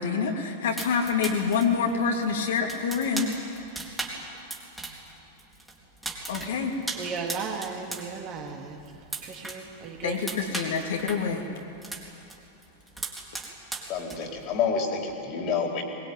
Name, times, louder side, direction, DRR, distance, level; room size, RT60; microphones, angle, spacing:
voice 1, 0.0-3.3 6.3-6.7 10.0-11.5, left 5 dB, 60° left, 1 dB, 3.0 m, -26 dB
sound 1, 0.8-5.1 5.4-8.1 8.4-9.7 10.0-12.4 12.6-14.5, right 2 dB, 5° right, 3.8 m, -37 dB
voice 2, 6.9-8.8 9.2-10.2, right 5 dB, 35° right, 1 dB, 3.2 m, -35 dB
voice 3, 13.9-15.8, left 6 dB, 40° left, 2 dB, 4.1 m, -28 dB
22.0 x 21.0 x 9.5 m, 2.7 s
figure-of-eight pair, 90°, 0 cm